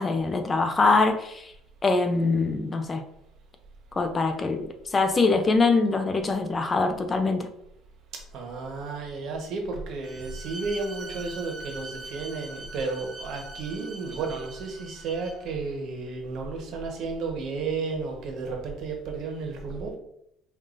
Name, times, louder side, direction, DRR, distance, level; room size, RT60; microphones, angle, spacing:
voice 1, 0.0-1.5 1.8-3.0 3.9-7.5, left 3 dB, 25° left, 7 dB, 0.4 m, -23 dB
voice 2, 8.1-20.0, right 4 dB, 60° right, 2 dB, 1.0 m, -33 dB
Bowed string instrument, 10.0-15.5, right 2 dB, 35° right, 0.7 m, -42 dB
5.2 x 2.6 x 2.5 m, 0.74 s
cardioid pair, 125°, 0 cm